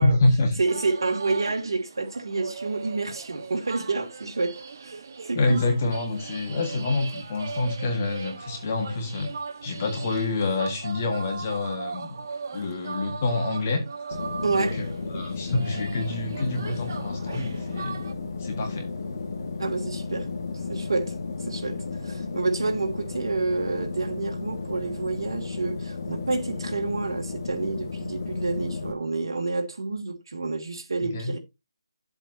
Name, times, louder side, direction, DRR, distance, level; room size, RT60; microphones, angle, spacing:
voice 1, 0.0-0.5 5.4-9.3 9.6-12.2 12.5-13.8 14.6-18.0 18.4-18.9 31.0-31.3, left 2 dB, 25° left, 1.8 m, -27 dB
sound 1, 0.6-18.1, right 4 dB, 40° right, 1.3 m, -38 dB
voice 2, 0.6-5.7 14.4-15.2 19.6-20.3 20.7-21.1 21.4-31.4, right 3 dB, 60° right, 2.8 m, -29 dB
sound 2, 14.1-28.9, left 4 dB, 40° left, 1.8 m, -34 dB
11.5 x 7.9 x 2.8 m
hypercardioid pair, 175°, 3 cm